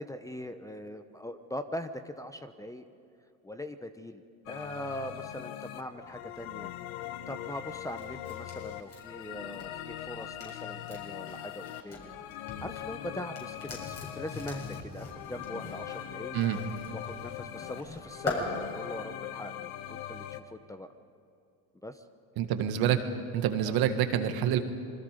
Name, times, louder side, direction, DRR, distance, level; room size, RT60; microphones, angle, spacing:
voice 1, 0.0-2.9 3.4-6.7 7.3-12.1 12.6-16.4 16.9-20.9 21.8-22.0 23.6-23.8, left 1 dB, 10° left, 9 dB, 0.8 m, -41 dB
sound 1, 4.5-20.4, left 12 dB, 80° left, 1.2 m, -41 dB
sound 2, 7.7-12.0 12.3-18.4, left 3 dB, 35° left, 7.4 m, -42 dB
voice 2, 22.4-23.0 23.3-24.6, right 10 dB, 60° right, 8 dB, 1.9 m, -27 dB
27.0 x 22.0 x 5.2 m, 2.5 s
supercardioid pair, 105°, 42 cm